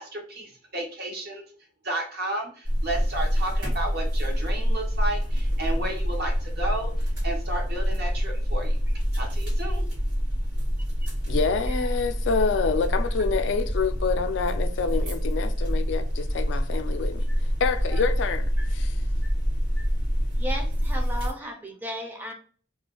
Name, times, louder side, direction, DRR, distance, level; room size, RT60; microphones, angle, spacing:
voice 1, 0.0-1.4 1.8-6.9 7.2-8.8 9.1-9.9, right 1 dB, 55° right, 0.8 m, -33 dB
sound 1, 2.6-21.3, equal, 85° right, 1.4 m, -26 dB
voice 2, 11.3-19.0, left 5 dB, 75° left, 0.3 m, -27 dB
voice 3, 20.3-22.3, equal, 10° right, 0.5 m, -35 dB
2.4 x 2.2 x 2.9 m
head